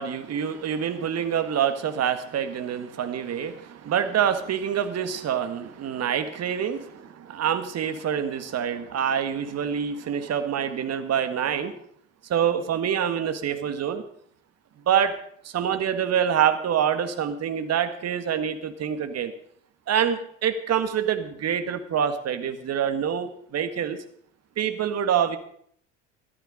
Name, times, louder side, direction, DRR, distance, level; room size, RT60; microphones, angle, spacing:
voice 1, 0.0-11.8 12.3-14.0 14.9-15.2 15.4-19.3 19.9-24.0 24.6-25.4, right 8 dB, 40° right, 10 dB, 1.7 m, -26 dB
13.5 x 13.0 x 5.1 m, 0.65 s
hypercardioid pair, 75°, 38 cm